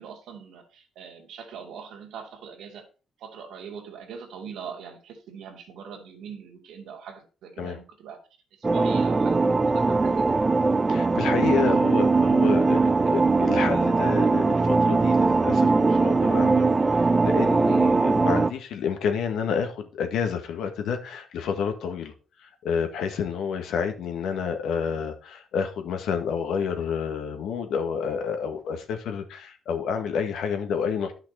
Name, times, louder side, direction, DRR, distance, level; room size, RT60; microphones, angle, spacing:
voice 1, 0.0-2.9 3.2-8.2 8.5-10.4 17.6-17.9, right 7 dB, 80° right, 2.5 m, -41 dB
sound 1, 8.6-18.5, right 3 dB, 25° right, 0.7 m, -21 dB
voice 2, 10.9-22.1 22.4-31.1, left 6 dB, 80° left, 1.7 m, -29 dB
11.0 x 5.8 x 4.2 m
cardioid pair, 90°, 0 cm